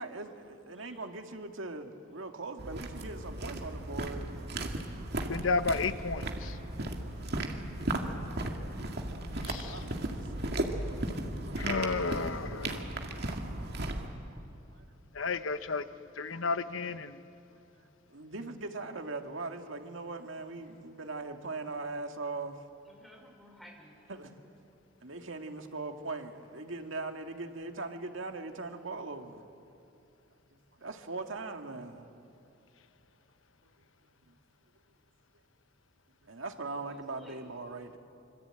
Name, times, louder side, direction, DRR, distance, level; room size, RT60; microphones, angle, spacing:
voice 1, 0.0-4.3 9.7-10.1 14.3-14.4 14.7-14.8 17.7-17.8 18.1-22.6 24.1-24.3 25.0-29.5 30.7-32.1 33.6-33.7 34.1-34.4 36.2-38.0, right 3 dB, 75° right, 5 dB, 2.0 m, -40 dB
sound 1, 2.6-14.1, right 1 dB, 55° right, 2.2 m, -36 dB
voice 2, 5.3-6.6 9.4-9.7 11.6-12.8 15.1-15.8 16.2-17.2, left 4 dB, 75° left, 12 dB, 1.0 m, -32 dB
voice 3, 22.9-23.9 36.9-37.4, equal, ahead, 0 dB, 4.7 m, -55 dB
25.5 x 25.5 x 9.0 m, 2.8 s
head